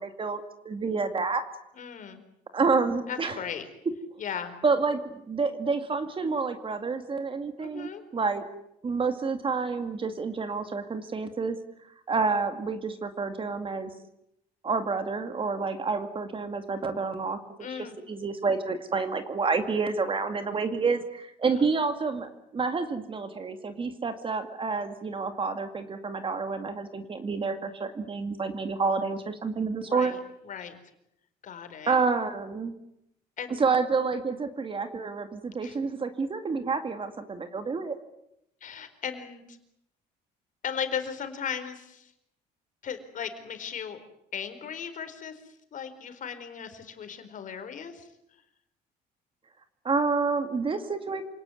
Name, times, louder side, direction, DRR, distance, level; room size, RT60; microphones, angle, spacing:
voice 1, 0.0-1.4 2.5-3.4 4.6-8.4 8.8-11.6 12.1-13.9 14.6-17.4 17.7-17.8 18.1-30.1 31.9-32.7 33.6-38.0 49.8-51.2, right 4 dB, 30° right, 8 dB, 2.3 m, -29 dB
voice 2, 1.8-2.2 3.1-3.6 4.2-4.5 7.6-8.0 17.6-18.0 29.9-30.2 30.5-30.8 31.4-32.0 33.4-33.6 35.6-35.8 38.6-39.6 40.6-42.1 42.8-44.0 44.3-45.4 45.7-48.1, left 7 dB, 50° left, 9 dB, 4.3 m, -37 dB
27.5 x 18.5 x 9.8 m, 0.82 s
cardioid pair, 110°, 17 cm